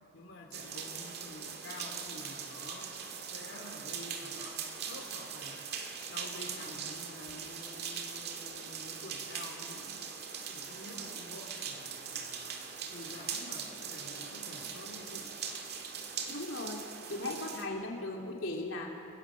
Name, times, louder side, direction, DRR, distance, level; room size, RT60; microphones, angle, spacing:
voice 1, 0.0-2.9 3.2-5.7 6.1-10.0 10.5-15.4, left 1 dB, 70° left, 1 dB, 2.8 m, -49 dB
sound 1, 0.5-17.6, right 6 dB, 50° right, 2.2 m, -41 dB
voice 2, 16.3-18.9, left 2 dB, 85° left, 0 dB, 3.0 m, -38 dB
30.0 x 17.5 x 7.4 m, 2.6 s
head